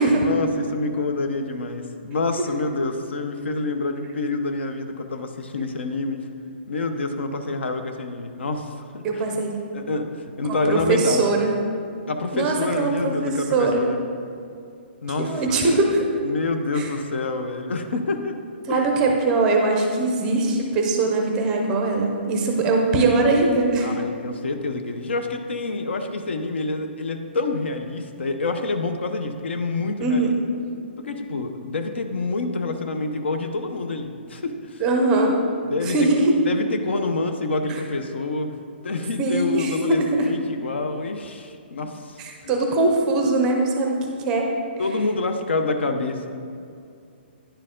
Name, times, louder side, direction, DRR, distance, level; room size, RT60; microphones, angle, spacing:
voice 1, 0.1-6.2 6.7-9.2 9.7-11.3 12.1-14.0 15.0-15.6 16.2-18.3 18.7-18.9 23.8-30.3 31.0-34.8 35.7-36.1 36.5-42.6 44.8-46.3, left 3 dB, 80° left, 7 dB, 0.7 m, -27 dB
voice 2, 9.0-9.6 10.4-11.5 12.3-13.9 15.2-16.1 16.7-16.9 18.7-23.9 30.0-30.4 34.8-35.4 35.8-36.3 39.2-40.3 42.2-44.0 44.2-44.5, right 3 dB, 10° right, 2 dB, 0.5 m, -21 dB
10.0 x 4.6 x 3.7 m, 2.4 s
hypercardioid pair, 175°, 6 cm